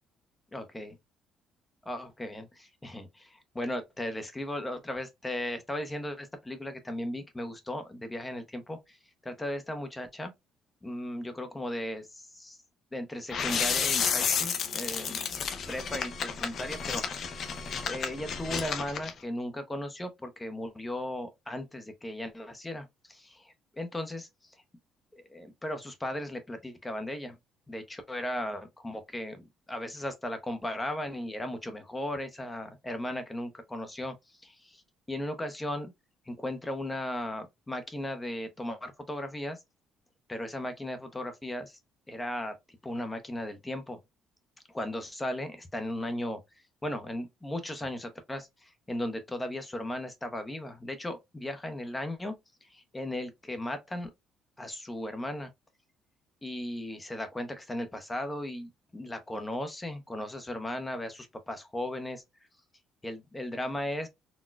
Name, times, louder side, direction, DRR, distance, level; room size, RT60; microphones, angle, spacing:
voice 1, 0.5-1.0 1.8-9.0 9.2-10.3 10.8-12.6 12.9-15.2 15.7-24.5 25.1-27.4 27.7-34.8 35.1-35.9 36.3-39.6 40.3-41.8 42.1-44.0 44.7-46.4 46.8-52.3 52.7-54.1 54.6-55.5 56.4-62.2 63.0-64.1, left 1 dB, 15° left, 0.6 m, -36 dB
sound 1, 13.3-19.1, left 6 dB, 50° left, 0.6 m, -31 dB
4.0 x 2.3 x 2.2 m
cardioid pair, 120°, 0 cm